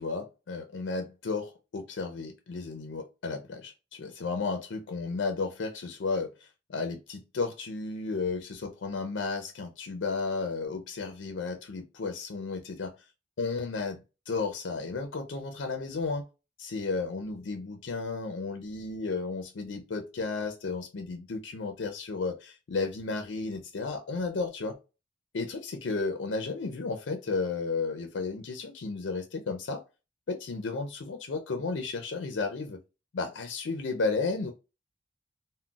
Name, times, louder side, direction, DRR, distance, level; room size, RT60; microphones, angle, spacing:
voice 1, 0.0-6.3 6.7-12.9 13.4-16.3 16.6-24.8 25.3-29.8 30.3-32.8 33.1-34.5, left 4 dB, 80° left, 0.5 m, -33 dB
3.8 x 2.1 x 2.3 m
head